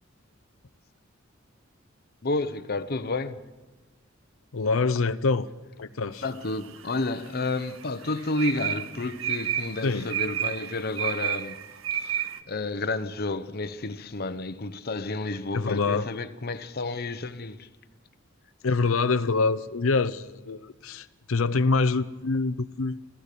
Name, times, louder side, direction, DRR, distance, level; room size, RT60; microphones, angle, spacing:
voice 1, 2.2-3.4 6.2-11.6 11.9-17.7, left 2 dB, 50° left, 0.9 m, -31 dB
voice 2, 4.5-5.5 5.8-6.2 9.8-10.1 15.5-16.1 18.6-23.0, left 4 dB, 90° left, 0.7 m, -25 dB
sound 1, 6.4-7.1 7.5-12.4, right 10 dB, 75° right, 0.8 m, -31 dB
27.5 x 15.0 x 6.9 m
head